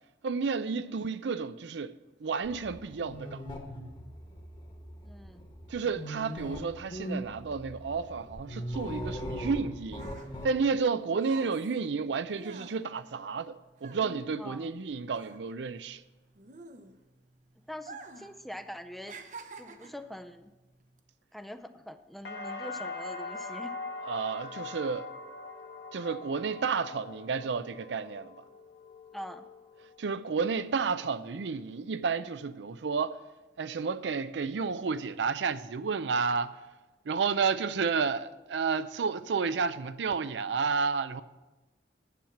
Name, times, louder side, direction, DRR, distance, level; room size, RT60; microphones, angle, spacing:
voice 1, 0.2-1.9 2.2-3.4 5.7-10.1 10.4-16.0 24.1-25.1 25.9-28.4 30.0-33.2 33.6-36.5 37.1-41.2, right 5 dB, 90° right, 0.5 m, -31 dB
sound 1, 2.4-10.6, equal, 30° left, 1.3 m, -40 dB
voice 2, 5.0-5.4 14.4-14.7 17.7-19.2 19.6-20.5 21.3-23.8 29.1-29.5, equal, ahead, 0.4 m, -44 dB
sound 2, 9.7-14.8 15.1-17.2 17.8-18.4 18.6-20.1 20.8-21.0, right 3 dB, 45° right, 0.7 m, -48 dB
sound 3, 22.2-30.2 30.5-31.2, left 3 dB, 80° left, 1.4 m, -42 dB
10.5 x 7.2 x 5.9 m
head